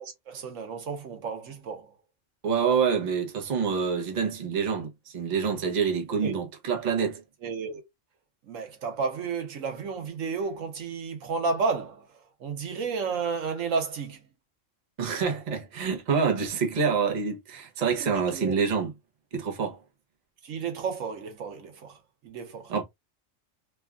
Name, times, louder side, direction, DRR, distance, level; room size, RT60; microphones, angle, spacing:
voice 1, 0.0-1.9 6.2-6.4 7.4-7.8 8.5-12.0 12.4-14.2 18.0-18.6 20.4-22.0 22.2-22.7, right 5 dB, 75° right, 1.2 m, -32 dB
voice 2, 2.4-7.2 15.0-18.9 19.3-19.8 22.7-22.8, right 6 dB, 40° right, 0.8 m, -27 dB
3.3 x 2.3 x 2.2 m
omnidirectional pair, 1.3 m